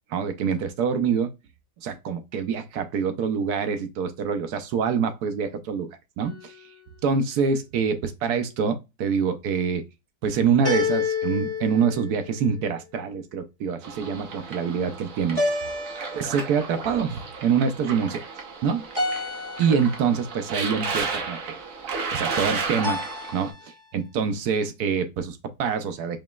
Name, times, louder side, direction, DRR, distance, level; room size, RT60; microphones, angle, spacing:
voice 1, 0.1-1.3 1.8-6.5 7.0-9.8 10.2-15.4 16.1-18.2 18.6-18.8 19.6-21.6 22.1-23.0 23.3-26.2, right 6 dB, 70° right, 1.1 m, -25 dB
sound 1, 6.2-6.9 10.6-12.7 15.3-16.8 18.9-20.1 22.8-23.8, left 3 dB, 15° left, 1.7 m, -30 dB
sound 2, 13.8-23.5, right 4 dB, 55° right, 1.3 m, -33 dB
5.1 x 2.9 x 2.2 m
omnidirectional pair, 1.9 m